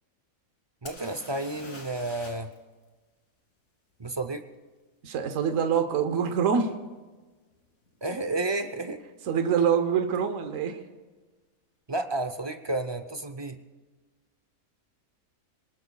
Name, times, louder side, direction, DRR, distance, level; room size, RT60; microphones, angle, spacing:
voice 1, 0.8-2.5 4.0-4.4 8.0-9.0 11.9-13.6, right 2 dB, 35° right, 7 dB, 0.4 m, -31 dB
sound 1, 0.9-2.6 2.8-2.9 6.3-6.4 7.1-7.3 7.5-8.1 10.2-10.3 10.5-10.6, left 2 dB, 75° left, 2.6 m, -46 dB
voice 2, 5.0-6.7 9.3-10.8, right 7 dB, 65° right, 7 dB, 1.3 m, -25 dB
27.0 x 19.5 x 2.3 m, 1.3 s
omnidirectional pair, 1.5 m